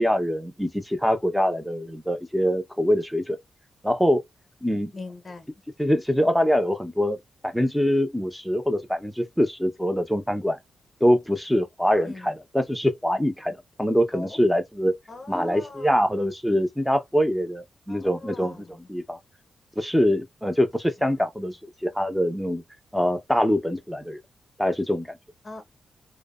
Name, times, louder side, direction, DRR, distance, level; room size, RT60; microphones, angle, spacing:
voice 1, 0.0-3.4 3.8-4.2 4.6-4.9 5.8-7.2 7.4-10.6 11.0-14.9 15.3-19.2 19.8-21.6 21.8-22.6 22.9-24.2 24.6-25.1, equal, ahead, 0.6 m, -24 dB
voice 2, 4.9-5.5 12.1-12.2 14.1-14.3 15.1-16.1 17.9-18.5 25.4-25.7, left 2 dB, 30° left, 0.8 m, -39 dB
2.7 x 2.1 x 2.3 m
cardioid pair, 85°, 0 cm